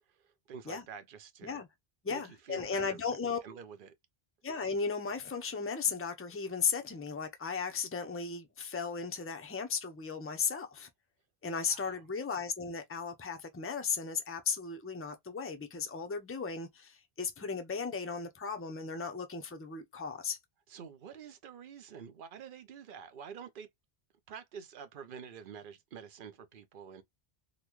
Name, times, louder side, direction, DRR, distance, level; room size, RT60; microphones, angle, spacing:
voice 1, 0.1-1.6 2.1-3.0 3.4-3.9 11.7-12.0 20.7-23.7 24.3-27.0, right 7 dB, 60° right, 0.8 m, -48 dB
voice 2, 2.0-3.4 4.4-10.9 11.4-20.4, left 5 dB, 15° left, 0.5 m, -36 dB
3.8 x 2.2 x 3.0 m
omnidirectional pair, 1.1 m